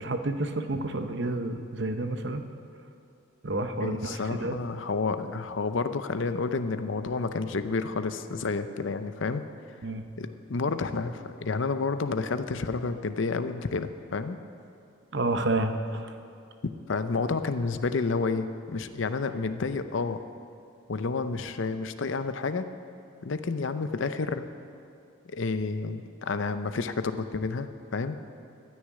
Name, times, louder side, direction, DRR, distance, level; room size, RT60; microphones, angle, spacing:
voice 1, 0.0-2.4 3.4-4.6 9.8-10.0 15.1-16.2, right 2 dB, 55° right, 7 dB, 0.8 m, -30 dB
voice 2, 3.8-9.4 10.2-14.4 16.9-20.2 20.9-22.6 23.2-24.5 25.3-28.2, left 4 dB, 65° left, 10 dB, 0.6 m, -30 dB
13.5 x 6.4 x 9.5 m, 2.6 s
head